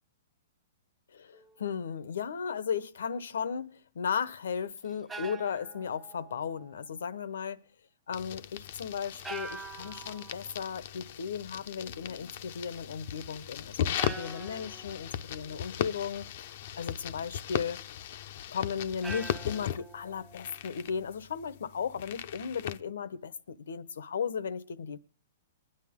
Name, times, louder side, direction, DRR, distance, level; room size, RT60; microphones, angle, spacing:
voice 1, 1.1-7.6 8.1-17.8 18.5-25.0, left 7 dB, 80° left, 0.9 m, -36 dB
sound 1, 1.3-1.6 4.8-6.7 9.2-10.6 13.1-13.3 14.0-15.6 19.0-20.9, right 3 dB, 10° right, 0.8 m, -45 dB
sound 2, 8.1-22.8, left 10 dB, 50° left, 0.6 m, -38 dB
23.5 x 10.0 x 3.6 m
hypercardioid pair, 150°, 0 cm